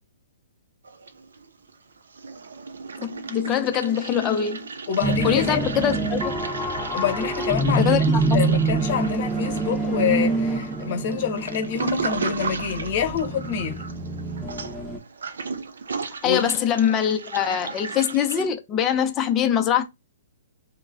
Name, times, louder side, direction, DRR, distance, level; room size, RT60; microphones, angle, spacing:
Toilet flush, 0.8-1.7 2.0-18.4, right 4 dB, 80° right, 0.3 m, -35 dB
voice 1, 3.0-4.7 5.2-6.3 7.8-8.5 16.2-19.8, left 9 dB, 25° left, 0.5 m, -23 dB
voice 2, 4.9-5.7 6.9-13.8 16.2-16.5, left 7 dB, 50° left, 1.0 m, -26 dB
sound 1, 5.0-15.0, right 3 dB, 5° right, 0.8 m, -26 dB
3.0 x 2.1 x 2.3 m
hypercardioid pair, 130°, 0 cm